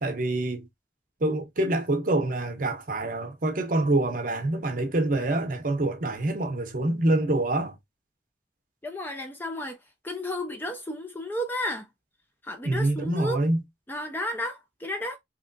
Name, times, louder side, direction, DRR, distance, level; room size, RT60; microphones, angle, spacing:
voice 1, 0.0-0.7 1.2-7.7 12.6-13.6, right 2 dB, 50° right, 0.7 m, -26 dB
voice 2, 8.8-9.8 10.0-11.8 12.5-13.4 13.9-15.2, left 1 dB, 10° left, 0.4 m, -32 dB
3.3 x 2.9 x 2.6 m
head